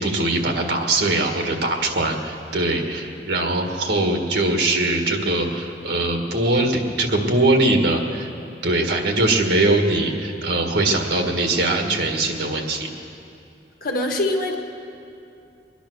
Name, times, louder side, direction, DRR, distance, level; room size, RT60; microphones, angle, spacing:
voice 1, 0.0-8.3 8.6-12.9, right 2 dB, 75° right, 3 dB, 1.7 m, -21 dB
voice 2, 13.8-14.5, left 1 dB, 55° left, 2 dB, 1.6 m, -23 dB
21.5 x 10.5 x 6.5 m, 2.6 s
head